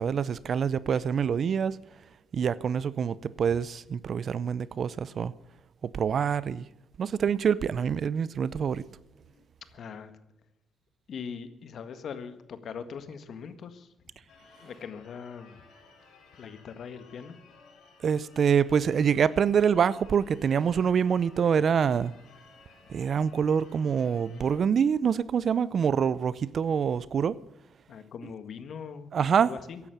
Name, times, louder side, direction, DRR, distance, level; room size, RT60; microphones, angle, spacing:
voice 1, 0.0-1.8 2.3-5.3 5.8-6.6 7.0-8.8 18.0-22.1 22.9-27.4 29.1-29.5, right 7 dB, 55° right, 0.7 m, -26 dB
voice 2, 9.7-10.1 11.1-13.9 14.6-15.6 16.4-17.4 27.9-29.8, left 6 dB, 60° left, 1.6 m, -41 dB
Church bell / Car / Alarm, 14.3-24.6, left 4 dB, 80° left, 4.7 m, -57 dB
15.5 x 10.5 x 6.9 m
cardioid pair, 90°, 0 cm